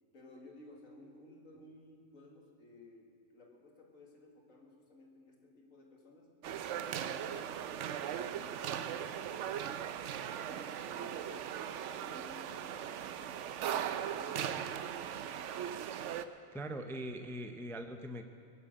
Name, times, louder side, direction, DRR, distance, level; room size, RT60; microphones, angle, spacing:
voice 1, 0.1-6.3 6.7-9.8 10.3-11.5 11.9-15.5, left 2 dB, 70° left, 0 dB, 2.3 m, -57 dB
sound 1, 6.4-16.3, right 9 dB, 65° right, 0.9 m, -39 dB
voice 2, 16.5-18.2, right 1 dB, 5° left, 6 dB, 0.5 m, -41 dB
21.0 x 7.4 x 7.6 m, 2.3 s
omnidirectional pair, 1.4 m